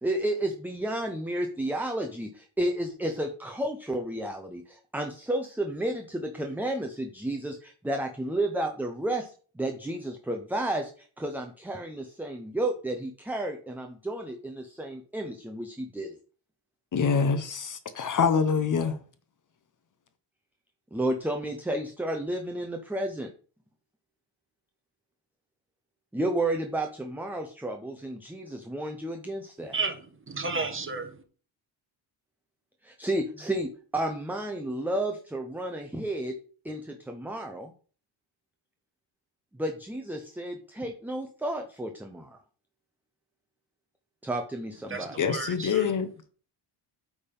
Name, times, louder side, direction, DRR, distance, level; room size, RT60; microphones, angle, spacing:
voice 1, 0.0-16.2 20.9-23.3 26.1-29.8 32.8-36.3 36.6-37.7 39.6-42.4 44.2-45.2, right 1 dB, 5° right, 0.5 m, -32 dB
voice 2, 16.9-18.9 45.2-46.1, left 6 dB, 40° left, 0.7 m, -25 dB
voice 3, 29.6-31.2 44.9-45.8, right 4 dB, 25° right, 1.1 m, -33 dB
8.5 x 3.6 x 5.2 m
cardioid pair, 145°, 49 cm